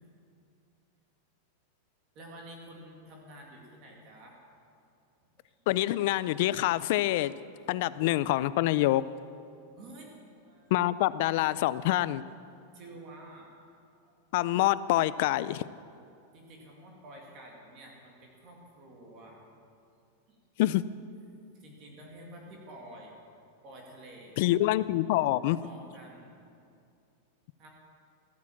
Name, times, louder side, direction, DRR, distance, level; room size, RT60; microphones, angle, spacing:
voice 1, 2.1-4.4 5.5-5.6 9.8-10.8 12.7-13.5 14.0-14.2 16.3-19.4 20.3-20.4 21.5-23.1 23.6-24.5 25.6-26.4 27.6-27.7, right 1 dB, 30° right, -1 dB, 2.3 m, -49 dB
voice 2, 5.7-7.3 7.7-9.0 10.7-12.2 14.3-15.6 20.6-20.8 24.4-25.6, left 15 dB, 45° left, 17 dB, 0.4 m, -26 dB
14.0 x 9.2 x 7.2 m, 2.5 s
supercardioid pair, 175°, 0 cm